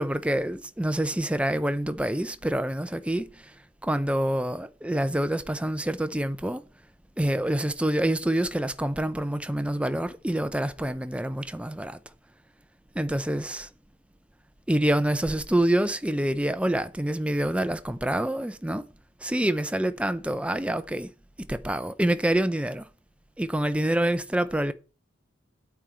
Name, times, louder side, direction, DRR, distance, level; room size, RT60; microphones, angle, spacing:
voice 1, 0.0-3.5 3.8-6.6 7.2-12.0 13.0-13.7 14.7-18.8 19.2-21.1 21.5-22.9 23.4-24.7, right 1 dB, 5° right, 0.6 m, -26 dB
8.8 x 4.5 x 7.5 m
head